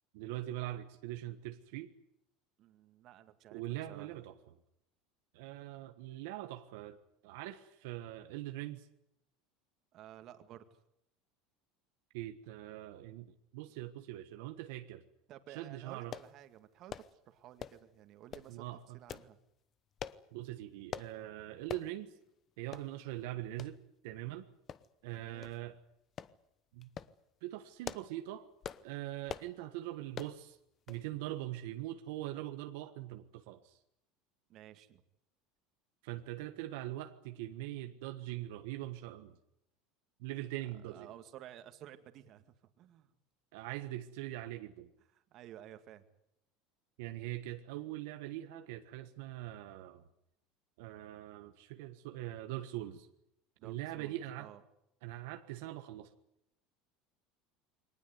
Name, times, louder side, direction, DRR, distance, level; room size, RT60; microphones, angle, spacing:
voice 1, 0.1-1.9 3.5-4.3 5.3-8.9 12.1-15.0 15.5-16.1 18.5-19.0 20.3-22.2 22.6-24.4 25.0-25.8 26.7-26.9 27.4-28.5 28.8-30.6 30.9-33.8 36.0-39.4 40.2-41.1 43.5-44.9 47.0-50.0 50.8-53.1 53.6-54.5 55.0-56.1, right 15 dB, 80° right, 1.4 m, -42 dB
voice 2, 2.6-4.3 9.9-10.8 15.3-19.4 25.1-25.5 34.5-35.0 40.9-43.1 45.3-46.0 53.6-54.6, right 11 dB, 45° right, 2.1 m, -54 dB
sound 1, 16.1-16.3 16.9-17.1 17.6-17.9 18.3-18.5 19.1-19.3 20.0-20.2 20.9-21.1 21.7-21.9 22.3-22.4 22.7-22.9 23.6-23.7 24.7-25.1 25.4-25.6 26.2-26.3 26.8-27.1 27.6-28.2 28.6-28.9 29.3-29.5 30.1-30.4 30.9-31.1 31.3-31.4, left 8 dB, 30° left, 0.9 m, -44 dB
22.5 x 19.5 x 9.6 m
supercardioid pair, 145°, 0 cm